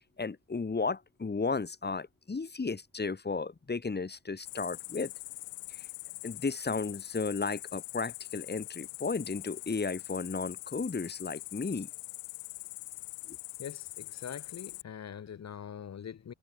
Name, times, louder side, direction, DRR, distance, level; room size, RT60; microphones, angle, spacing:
voice 1, 0.2-5.1 5.7-5.9 6.2-11.9 13.3-13.4, left 4 dB, 30° left, 3.4 m, -34 dB
Cricket, 4.5-14.8, left 33 dB, 80° left, 1.1 m, -43 dB
voice 2, 13.6-16.3, left 8 dB, 50° left, 2.1 m, -43 dB
hypercardioid pair, 40°, 34 cm